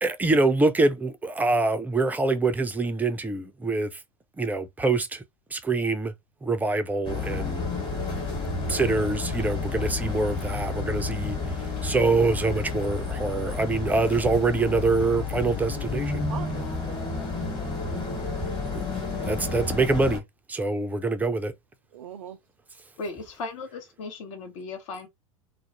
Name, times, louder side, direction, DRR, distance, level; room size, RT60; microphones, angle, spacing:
voice 1, 0.0-4.0 4.4-5.2 5.5-6.1 6.4-7.6 8.7-11.6 11.8-16.3 18.7-18.9 19.2-20.2 20.5-21.5, right 3 dB, 10° right, 0.4 m, -25 dB
sound 1, 7.0-20.2, left 4 dB, 25° left, 1.2 m, -31 dB
voice 2, 16.3-17.8 21.9-22.4, right 8 dB, 75° right, 0.5 m, -43 dB
voice 3, 23.0-25.1, left 3 dB, 60° left, 0.9 m, -36 dB
2.4 x 2.0 x 2.8 m
hypercardioid pair, 95°, 18 cm